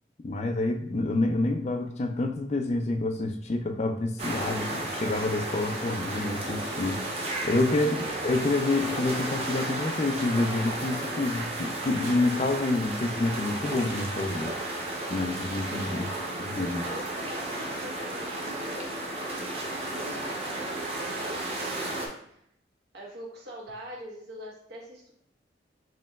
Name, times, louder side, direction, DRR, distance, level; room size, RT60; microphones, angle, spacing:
voice 1, 0.2-14.5 15.1-16.1 16.4-16.9, left 2 dB, 35° left, 5 dB, 0.4 m, -28 dB
sound 1, 4.2-22.1, right 1 dB, 35° right, 0.7 m, -33 dB
voice 2, 7.8-8.2 15.8-16.4 16.8-22.4 22.9-25.2, right 1 dB, 70° right, -3 dB, 1.2 m, -44 dB
5.1 x 2.9 x 2.3 m, 0.69 s
head